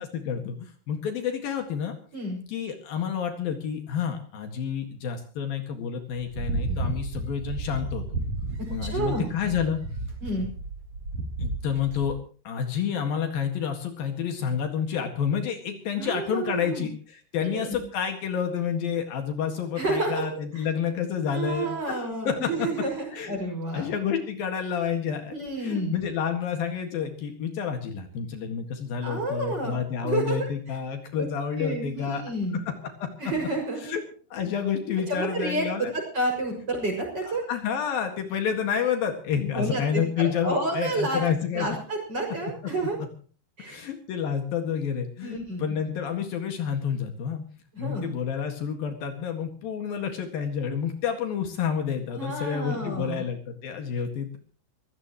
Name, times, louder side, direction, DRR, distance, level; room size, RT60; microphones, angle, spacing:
voice 1, 0.0-2.0 2.5-8.1 8.7-9.8 11.4-12.2 12.5-16.9 17.3-21.7 22.3-22.7 23.1-23.3 23.7-32.2 32.5-32.6 33.0-33.1 33.8-34.0 34.3-35.9 37.5-41.7 43.7-47.4 47.8-54.4, left 7 dB, 70° left, 5 dB, 3.5 m, -29 dB
sound 1, 6.1-12.1, right 2 dB, 50° right, 4.4 m, -32 dB
voice 2, 8.8-9.2 10.2-10.5 16.0-16.9 17.4-17.8 19.7-20.7 21.3-23.9 25.3-26.0 29.0-29.8 30.0-30.8 31.2-31.3 31.6-32.6 33.2-33.9 35.1-37.4 39.5-41.2 41.5-43.0 43.6-43.9 45.2-45.8 47.7-48.1 52.1-53.3, right 2 dB, 25° right, 2 dB, 6.7 m, -30 dB
23.0 x 16.5 x 3.1 m, 0.41 s
omnidirectional pair, 4.5 m